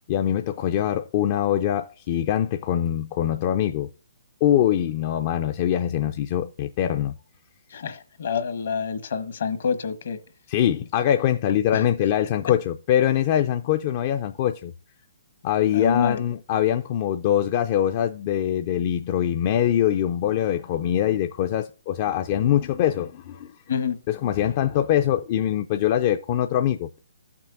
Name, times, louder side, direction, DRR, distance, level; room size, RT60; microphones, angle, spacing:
voice 1, 0.0-3.9 4.4-7.1 10.5-14.7 15.4-23.5 24.1-27.0, left 11 dB, 40° left, 0.4 m, -23 dB
voice 2, 7.7-10.2 11.7-11.8 15.7-16.2 23.7-24.0, left 6 dB, 65° left, 1.2 m, -27 dB
14.0 x 6.0 x 2.6 m
hypercardioid pair, 140°, 0 cm